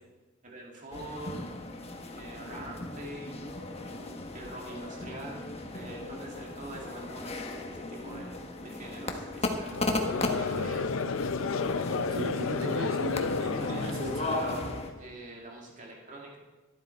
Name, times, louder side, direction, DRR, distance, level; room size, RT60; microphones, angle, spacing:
voice 1, 0.4-1.7 2.1-3.5 4.0-8.3 8.6-9.7 10.4-11.1 13.6-16.4, right 1 dB, 40° right, -1 dB, 2.1 m, -44 dB
sound 1, 0.9-14.9, left 2 dB, 30° left, 1.1 m, -36 dB
Conversation / Crowd, 9.7-15.0, left 4 dB, 75° left, 0.6 m, -32 dB
voice 2, 12.1-14.7, equal, 80° right, 0 dB, 2.5 m, -36 dB
12.0 x 11.0 x 4.4 m, 1.2 s
head